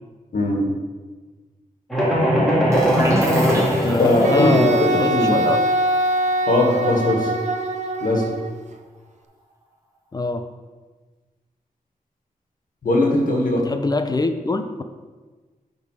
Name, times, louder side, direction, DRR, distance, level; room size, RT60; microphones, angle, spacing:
voice 1, 0.3-0.7 4.0-5.4 6.5-7.3 8.0-8.2 12.8-13.7, left 2 dB, 70° left, 0 dB, 1.5 m, -19 dB
sound 1, 1.9-4.8, equal, ahead, 1.7 m, -20 dB
sound 2, 2.7-8.3, right 1 dB, 20° right, 1.0 m, -29 dB
voice 2, 3.4-5.6 10.1-10.5 13.5-14.8, left 3 dB, 25° left, 8 dB, 0.4 m, -23 dB
Wind instrument woodwind instrument, 4.2-8.5, right 2 dB, 55° right, 0.6 m, -23 dB
9.4 x 3.7 x 4.8 m, 1.3 s
wide cardioid pair, 155°, 14 cm